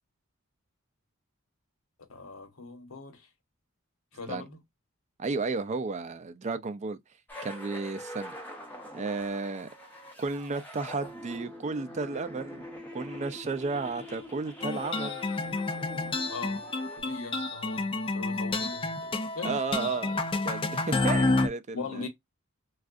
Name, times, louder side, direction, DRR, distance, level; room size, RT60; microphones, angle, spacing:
voice 1, 2.1-3.3 4.1-4.6 16.3-16.7 17.0-19.9 21.7-22.1, left 4 dB, 75° left, 1.1 m, -40 dB
voice 2, 5.2-7.0 7.4-8.3 8.9-9.7 10.2-15.2 19.4-20.1 20.4-22.1, right 4 dB, 35° right, 0.4 m, -33 dB
sound 1, 7.3-17.0, left 1 dB, 10° left, 1.2 m, -44 dB
sound 2, 14.6-21.5, left 3 dB, 25° left, 0.5 m, -30 dB
4.5 x 2.4 x 2.4 m
head